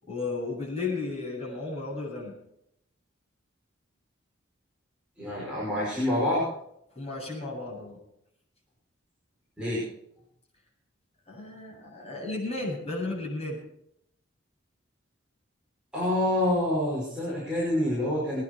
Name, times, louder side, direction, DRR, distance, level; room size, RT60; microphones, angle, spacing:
voice 1, 0.0-2.4 6.9-8.0 11.3-13.6, left 3 dB, 30° left, -4 dB, 8.0 m, -34 dB
voice 2, 5.2-6.5 9.6-9.8 15.9-18.4, left 1 dB, 5° right, -8 dB, 5.9 m, -27 dB
22.5 x 10.5 x 4.7 m, 0.76 s
head